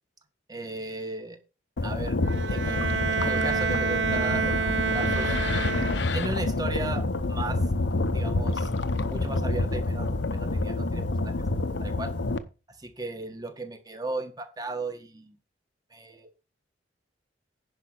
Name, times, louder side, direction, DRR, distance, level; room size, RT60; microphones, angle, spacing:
voice 1, 0.5-1.4 1.8-2.2 2.5-2.8 3.2-5.4 5.9-7.6 8.1-11.3 11.8-12.1 12.7-15.4 15.9-16.3, right 2 dB, 20° right, 7 dB, 1.5 m, -36 dB
sound 1, 1.8-12.4, left 2 dB, 70° left, 0.9 m, -28 dB
Bowed string instrument, 2.2-6.4, right 5 dB, 80° right, 0.6 m, -28 dB
10.5 x 5.4 x 6.2 m, 0.32 s
head